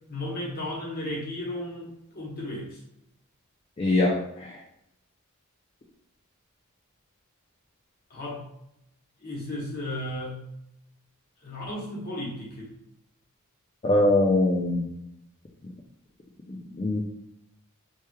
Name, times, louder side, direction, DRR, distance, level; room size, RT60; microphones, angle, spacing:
voice 1, 0.1-2.8 8.1-8.5 9.2-10.5 11.4-12.7, left 1 dB, 45° left, -4 dB, 1.2 m, -34 dB
voice 2, 3.8-4.6 13.8-14.9 16.5-17.0, left 2 dB, 25° left, -4 dB, 0.4 m, -23 dB
3.1 x 3.1 x 2.2 m, 0.79 s
head